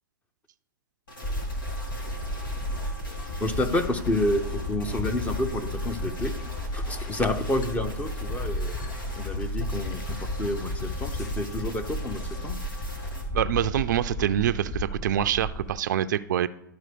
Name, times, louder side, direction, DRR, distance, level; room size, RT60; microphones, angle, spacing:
sound 1, 1.1-13.2, left 1 dB, 85° left, 2.5 m, -42 dB
sound 2, 1.2-15.7, left 1 dB, 30° left, 1.8 m, -33 dB
voice 1, 3.4-6.3 6.7-8.8 9.2-12.6, left 1 dB, 10° left, 8 dB, 0.7 m, -29 dB
sound 3, 6.0-12.4, left 5 dB, 55° left, 0.8 m, -45 dB
voice 2, 13.3-16.5, right 11 dB, 60° right, 13 dB, 0.4 m, -25 dB
12.0 x 4.5 x 5.1 m, 0.84 s
hypercardioid pair, 120°, 11 cm